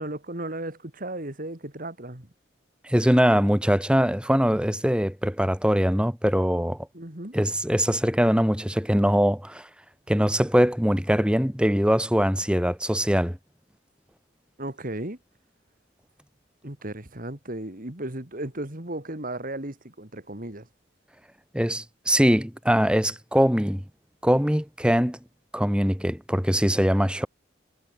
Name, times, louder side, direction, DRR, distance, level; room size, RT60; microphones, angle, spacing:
voice 1, 0.0-2.3 6.9-7.3 14.6-15.2 16.6-20.7, right 1 dB, 45° right, 3.2 m, -35 dB
voice 2, 2.8-6.8 7.3-9.7 10.1-13.4 21.5-23.8 24.2-25.2 25.5-27.3, equal, 5° right, 3.6 m, -22 dB
head